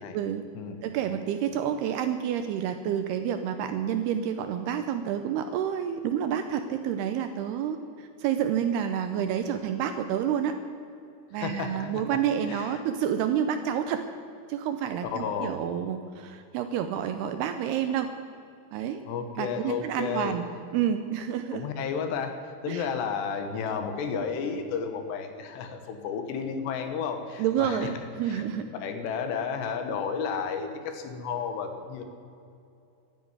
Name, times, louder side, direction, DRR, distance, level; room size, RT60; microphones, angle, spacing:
voice 1, 0.1-0.4 0.8-10.6 11.3-14.0 14.5-18.1 18.7-19.1 19.4-20.5 20.7-21.7 22.7-22.9 27.4-28.7, right 9 dB, 80° right, 8 dB, 2.4 m, -29 dB
voice 2, 11.4-12.1 12.5-12.8 15.0-15.6 19.1-20.4 21.5-27.9 28.3-32.0, left 6 dB, 75° left, 6 dB, 3.4 m, -32 dB
12.5 x 11.0 x 9.6 m, 2.6 s
omnidirectional pair, 5.2 m